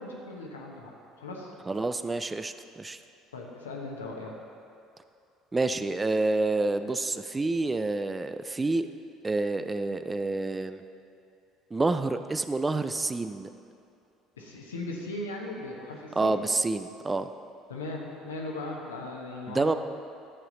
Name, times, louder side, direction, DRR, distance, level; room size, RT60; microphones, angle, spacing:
voice 1, 0.0-1.5 3.3-4.3 14.4-16.4 17.7-19.8, left 2 dB, 80° left, -1 dB, 1.2 m, -38 dB
voice 2, 1.7-3.0 5.5-8.9 9.2-10.8 11.7-13.5 16.2-17.3 19.5-19.7, right 3 dB, 20° right, 10 dB, 0.4 m, -28 dB
11.0 x 7.4 x 4.0 m, 2.6 s
figure-of-eight pair, 60°, 0 cm